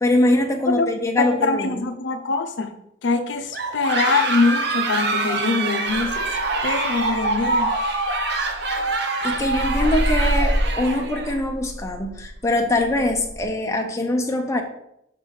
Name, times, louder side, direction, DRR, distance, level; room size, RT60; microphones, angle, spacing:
voice 1, 0.0-1.8 9.2-14.6, left 1 dB, 15° left, 2 dB, 0.7 m, -22 dB
voice 2, 1.2-2.7 3.0-6.3 6.6-7.7, left 3 dB, 70° left, 8 dB, 0.6 m, -23 dB
sound 1, 3.5-11.4, right 3 dB, 55° right, 0.8 m, -25 dB
sound 2, 5.9-8.9 9.2-13.4, equal, 70° right, 1.6 m, -28 dB
6.6 x 4.0 x 4.7 m, 0.78 s
head